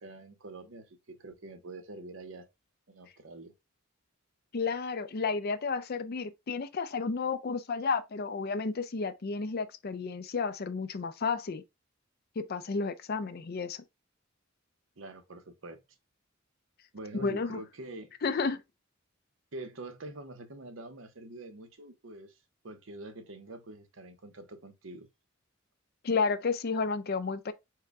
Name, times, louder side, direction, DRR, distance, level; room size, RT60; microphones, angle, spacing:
voice 1, 0.0-2.5 2.9-3.5 15.0-15.8 16.9-18.1 19.5-22.4 22.6-25.1, right 2 dB, 70° right, 0.8 m, -45 dB
voice 2, 4.5-11.6 12.4-13.8 17.1-17.6 18.2-18.6 26.0-27.5, left 4 dB, 50° left, 0.5 m, -32 dB
4.6 x 2.2 x 4.7 m
head